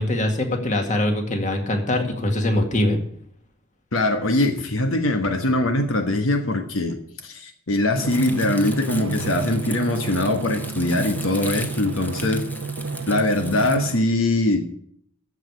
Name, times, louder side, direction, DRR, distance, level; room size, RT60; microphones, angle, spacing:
voice 1, 0.0-3.0, left 1 dB, 40° left, 4 dB, 2.0 m, -22 dB
voice 2, 3.9-12.4 13.1-14.7, left 2 dB, 80° left, 6 dB, 1.2 m, -22 dB
Drum, 7.9-14.0, right 4 dB, 65° right, 0.6 m, -30 dB
Crumpling crinkling, 8.1-13.8, left 1 dB, 10° left, 1.0 m, -38 dB
14.0 x 4.9 x 8.2 m, 0.64 s
head